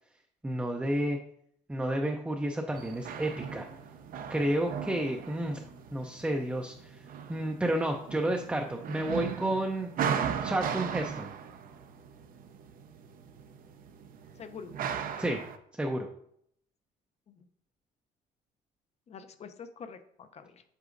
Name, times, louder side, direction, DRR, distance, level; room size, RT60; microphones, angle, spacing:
voice 1, 0.4-1.2 1.7-3.7 4.3-5.6 5.9-6.9 7.3-9.9 10.4-11.3 15.2-15.4 15.8-16.1, right 1 dB, 5° right, 2 dB, 0.5 m, -31 dB
sound 1, 2.7-15.6, right 7 dB, 55° right, 0.6 m, -38 dB
voice 2, 14.4-14.7 17.3-17.5 19.1-20.6, left 6 dB, 40° left, 9 dB, 0.6 m, -46 dB
8.0 x 4.7 x 2.6 m, 0.71 s
cardioid pair, 110°, 17 cm